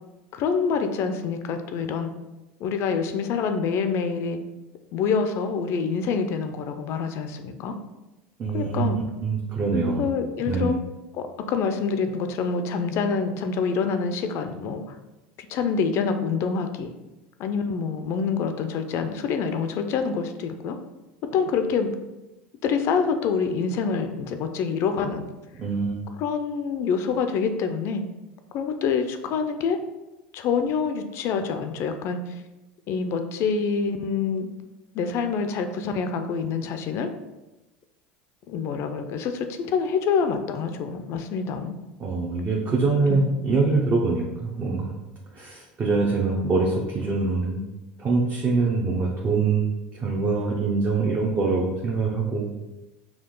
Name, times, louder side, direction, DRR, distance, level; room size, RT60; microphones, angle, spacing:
voice 1, 0.3-2.1 2.6-4.4 4.9-7.8 8.5-9.0 10.0-10.8 11.1-14.8 15.4-16.9 17.4-20.8 21.3-21.9 22.6-25.3 26.2-28.0 28.5-29.8 30.3-32.2 32.9-34.5 34.9-37.1 38.5-41.7 43.1-43.2, left 5 dB, 55° left, 7 dB, 0.4 m, -26 dB
voice 2, 8.4-10.1 10.5-10.8 25.6-26.0 42.0-44.9 45.4-47.6 48.0-52.4, right 4 dB, 30° right, -2 dB, 0.7 m, -24 dB
4.5 x 2.3 x 3.7 m, 1.0 s
supercardioid pair, 105°, 6 cm